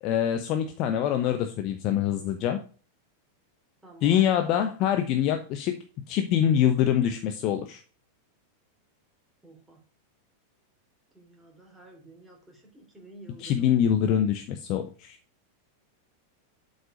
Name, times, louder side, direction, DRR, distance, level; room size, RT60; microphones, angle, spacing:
voice 1, 0.0-2.6 4.0-5.8 6.1-7.8 13.4-15.2, left 10 dB, 40° left, 7 dB, 0.9 m, -24 dB
voice 2, 3.8-4.3 9.4-9.8 11.1-13.7, right 2 dB, 5° right, 0 dB, 3.3 m, -51 dB
7.6 x 5.4 x 5.1 m, 0.38 s
figure-of-eight pair, 90°, 0 cm